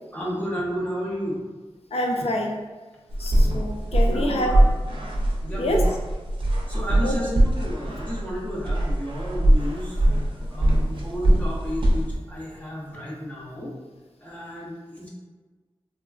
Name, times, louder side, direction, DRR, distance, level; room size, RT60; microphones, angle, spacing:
voice 1, 0.1-1.4 3.2-3.4 4.1-4.6 5.0-5.1 5.4-5.9 6.7-10.1 10.4-13.7 14.2-15.1, equal, 15° left, -7 dB, 0.7 m, -32 dB
voice 2, 1.9-2.6 3.2-4.5 5.5-5.8 7.0-7.2, equal, 75° left, 1 dB, 0.4 m, -26 dB
sound 1, 3.1-12.2, right 1 dB, 55° right, 0.5 m, -22 dB
3.3 x 2.1 x 2.3 m, 1.3 s
wide cardioid pair, 95°, 10 cm